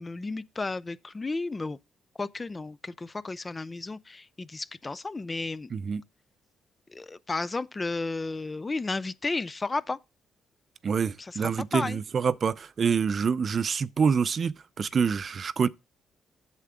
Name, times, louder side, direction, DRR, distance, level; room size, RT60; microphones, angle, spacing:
voice 1, 0.0-1.8 2.2-5.7 6.9-10.0 11.4-12.0, left 3 dB, 25° left, 0.4 m, -33 dB
voice 2, 5.7-6.0 10.8-15.7, right 6 dB, 45° right, 0.5 m, -26 dB
8.2 x 6.8 x 3.6 m
cardioid pair, 90°, 0 cm